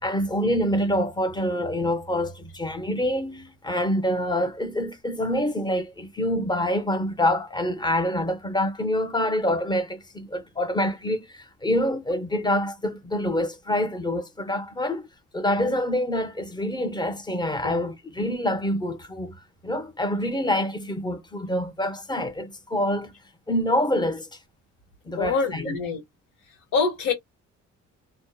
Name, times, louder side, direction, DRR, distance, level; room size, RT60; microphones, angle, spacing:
voice 1, 0.0-15.1 15.3-19.4 19.6-23.1 23.5-24.4 25.0-25.7, left 1 dB, 15° left, 0.8 m, -26 dB
voice 2, 25.2-26.0 26.5-27.1, left 5 dB, 75° left, 1.1 m, -25 dB
2.7 x 2.1 x 2.2 m
cardioid pair, 90°, 30 cm